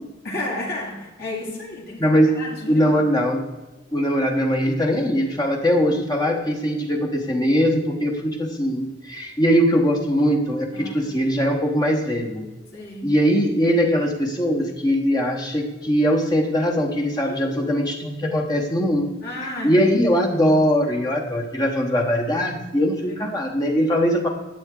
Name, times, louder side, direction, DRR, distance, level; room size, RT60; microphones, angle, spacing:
voice 1, 0.2-3.0 10.7-11.0 12.7-13.1 17.2-17.8 19.2-19.8 23.1-23.3, left 1 dB, 55° left, -5 dB, 2.4 m, -33 dB
voice 2, 2.0-2.4 2.7-3.4 3.9-12.5 13.0-19.1 19.6-24.3, equal, 20° left, 1 dB, 1.1 m, -21 dB
11.5 x 8.4 x 3.8 m, 1.1 s
head